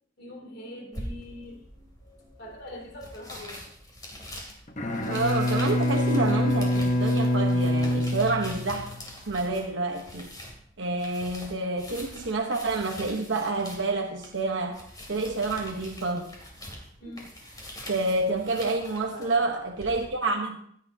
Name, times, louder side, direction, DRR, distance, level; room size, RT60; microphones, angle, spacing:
voice 1, 0.2-3.7 4.1-4.2 17.0-17.5 18.5-19.4, left 1 dB, 55° left, 0 dB, 2.8 m, -44 dB
sound 1, 0.9-20.0, equal, 20° left, 2.8 m, -44 dB
Bowed string instrument, 4.7-9.0, left 1 dB, 40° left, 0.9 m, -25 dB
voice 2, 5.1-8.9 9.2-10.3 10.8-14.8 15.1-16.2 17.9-20.6, right 3 dB, 65° right, 1 dB, 1.0 m, -28 dB
16.0 x 9.5 x 2.8 m, 0.66 s
head